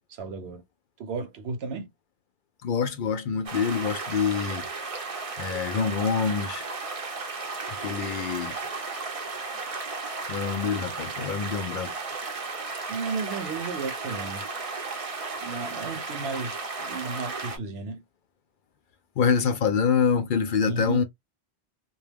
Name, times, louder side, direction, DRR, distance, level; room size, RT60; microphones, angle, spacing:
voice 1, 0.1-0.6 1.0-1.9 12.9-14.4 15.4-18.0 20.7-21.0, right 4 dB, 80° right, 0.9 m, -33 dB
voice 2, 2.6-4.7 5.4-6.7 7.8-8.6 10.3-11.9 19.2-21.0, left 6 dB, 60° left, 0.6 m, -26 dB
sound 1, 3.5-17.6, right 4 dB, 40° right, 0.6 m, -34 dB
2.2 x 2.2 x 3.3 m
omnidirectional pair, 1.0 m